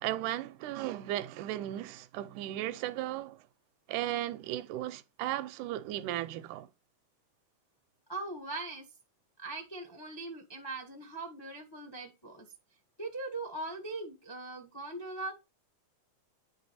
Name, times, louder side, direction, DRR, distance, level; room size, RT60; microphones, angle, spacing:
voice 1, 0.0-3.4 3.9-6.7, right 14 dB, 90° right, 2.1 m, -36 dB
voice 2, 8.1-8.9 9.4-12.5 13.0-15.3, right 2 dB, 25° left, 0.5 m, -40 dB
9.5 x 3.9 x 4.2 m
omnidirectional pair, 3.5 m